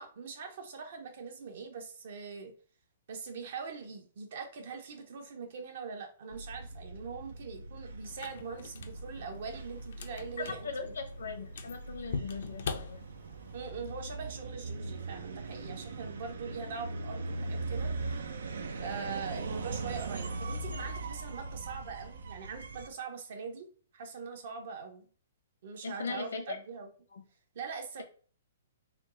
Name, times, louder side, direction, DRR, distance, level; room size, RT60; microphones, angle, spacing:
voice 1, 0.0-2.5 3.1-10.9 13.5-17.9 18.8-23.7 23.9-25.0 25.6-26.9 27.5-28.0, right 5 dB, 60° right, 4 dB, 1.0 m, -42 dB
sound 1, 6.3-22.9, right 3 dB, 80° right, 0.5 m, -40 dB
sound 2, 8.1-13.6, left 5 dB, 65° left, 0.5 m, -43 dB
voice 2, 10.6-13.1 25.8-26.6 27.1-27.2, left 4 dB, 85° left, 5 dB, 1.0 m, -39 dB
3.5 x 2.3 x 3.8 m, 0.41 s
hypercardioid pair, 135°, 0 cm